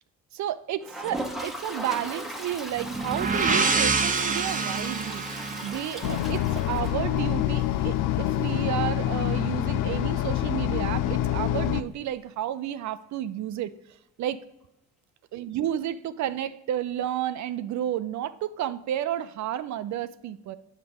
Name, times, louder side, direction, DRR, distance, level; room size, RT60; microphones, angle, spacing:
voice 1, 0.3-13.7 14.2-14.4 15.3-20.6, right 11 dB, 70° right, 13 dB, 0.5 m, -31 dB
Toilet flush, 0.8-7.5 7.9-8.0 8.2-8.3 8.5-8.6 11.2-11.3 12.6-12.7, right 1 dB, ahead, 1.1 m, -38 dB
sound 1, 2.8-6.6, right 4 dB, 25° right, 0.9 m, -27 dB
sound 2, 6.0-11.8, left 13 dB, 85° left, 0.5 m, -26 dB
8.0 x 6.4 x 5.2 m, 0.89 s
cardioid pair, 90°, 30 cm